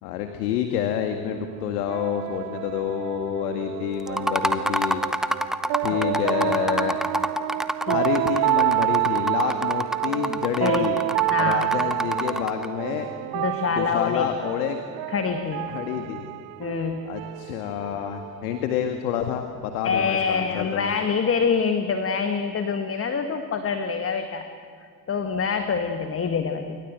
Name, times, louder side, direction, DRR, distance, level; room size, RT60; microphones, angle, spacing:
voice 1, 0.0-5.0 5.8-7.0 7.9-11.0 11.4-13.1 13.8-14.8 15.7-16.3 17.1-20.9, left 9 dB, 65° left, 6 dB, 2.0 m, -28 dB
sound 1, 1.3-18.8, right 20 dB, 45° right, 0.7 m, -29 dB
sound 2, 4.1-12.7, equal, ahead, 1.0 m, -27 dB
voice 2, 11.3-11.6 13.3-14.3 15.1-15.7 16.6-17.0 19.8-24.5 24.8-26.8, left 6 dB, 25° left, 7 dB, 1.7 m, -26 dB
28.0 x 24.0 x 7.8 m, 2.1 s
figure-of-eight pair, 65°, 49 cm